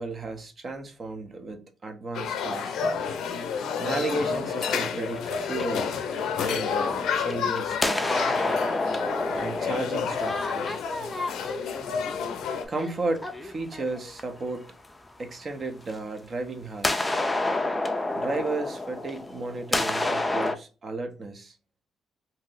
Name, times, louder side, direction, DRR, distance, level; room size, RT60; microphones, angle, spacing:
voice 1, 0.0-2.8 3.8-5.9 6.4-8.3 9.4-10.7 12.7-14.7 15.2-17.1 18.1-21.6, right 3 dB, 40° right, 0.6 m, -34 dB
sound 1, 2.1-12.7, left 6 dB, 80° left, 0.4 m, -29 dB
sound 2, 5.0-6.8 7.1-14.4 15.9-16.0 16.8-20.5, left 2 dB, 15° left, 0.4 m, -29 dB
2.7 x 2.0 x 3.9 m
cardioid pair, 90°, 0 cm